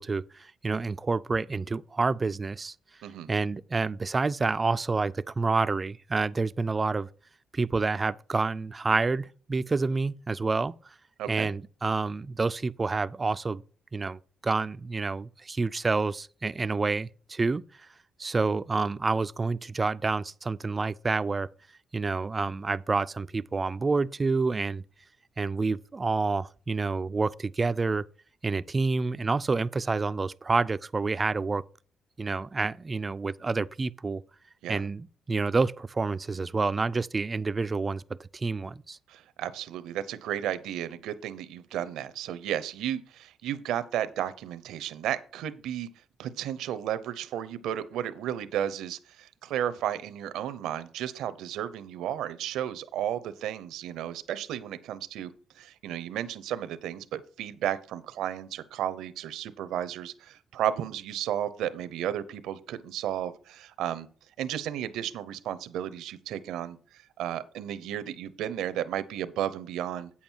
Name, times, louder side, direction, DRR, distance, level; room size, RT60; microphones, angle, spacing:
voice 1, 0.0-2.7 3.3-7.1 7.5-10.7 11.3-13.6 13.9-17.6 18.2-21.5 21.9-24.8 25.4-28.0 28.4-31.6 32.2-34.2 34.7-39.0, right 3 dB, 30° right, 0.4 m, -28 dB
voice 2, 39.1-45.9 46.2-64.1 64.4-70.1, right 10 dB, 85° right, 0.7 m, -33 dB
8.5 x 7.2 x 4.5 m
cardioid pair, 90°, 0 cm